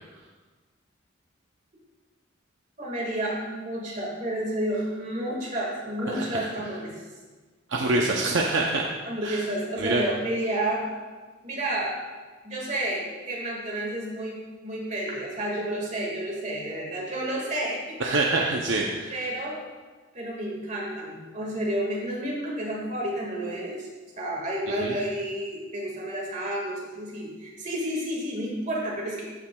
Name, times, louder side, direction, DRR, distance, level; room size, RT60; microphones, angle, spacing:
voice 1, 2.8-7.0 9.0-10.9 11.4-11.9 12.4-18.6 19.1-19.6 20.1-23.9 24.2-29.2, right 1 dB, 35° right, -3 dB, 1.8 m, -31 dB
voice 2, 6.1-6.5 7.7-8.8 9.2-9.4 9.8-10.0 18.0-19.2 24.8-25.0, right 2 dB, 65° right, 0 dB, 0.6 m, -25 dB
14.0 x 5.8 x 2.3 m, 1.3 s
head